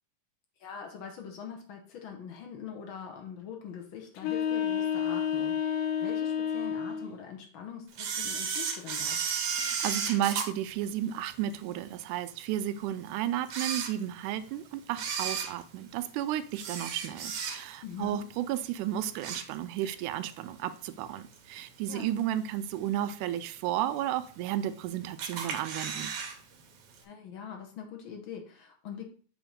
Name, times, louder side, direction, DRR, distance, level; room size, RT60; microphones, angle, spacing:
voice 1, 0.6-9.2 17.8-18.2 21.9-22.1 27.0-29.1, left 7 dB, 65° left, 3 dB, 1.2 m, -43 dB
sound 1, 4.2-7.2, left 8 dB, 80° left, 2.2 m, -30 dB
Camera, 8.0-11.5 12.0-12.1 12.8-12.9 13.4-14.4 14.9-17.9 18.3-18.6 18.9-20.0 20.3-20.4 21.3-21.4 22.0-22.4 22.8-22.9 23.1-23.2 23.4-23.5 24.2-24.8 25.2-26.4 26.6-26.7 27.0-27.1, right 6 dB, 65° right, 1.6 m, -34 dB
voice 2, 9.6-26.1, right 12 dB, 85° right, 12 dB, 2.0 m, -33 dB
7.1 x 3.0 x 5.0 m, 0.42 s
omnidirectional pair, 3.6 m